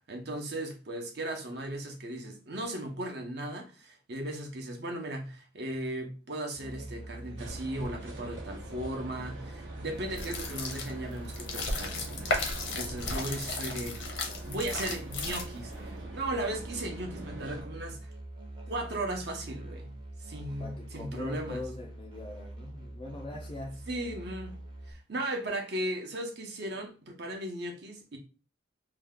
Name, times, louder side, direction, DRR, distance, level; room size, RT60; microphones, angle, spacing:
voice 1, 0.1-12.3 12.7-18.1 18.7-19.9 20.2-21.6 23.9-24.5 24.9-28.2, right 1 dB, 55° right, 0.8 m, -37 dB
Musical instrument, 6.5-24.9, right 1 dB, 25° right, 0.7 m, -44 dB
sound 1, 7.4-17.6, right 2 dB, 80° right, 0.8 m, -45 dB
sound 2, 10.1-15.8, left 3 dB, 75° left, 0.8 m, -35 dB
voice 2, 20.6-23.9, left 2 dB, 25° left, 0.3 m, -42 dB
2.8 x 2.2 x 3.5 m
head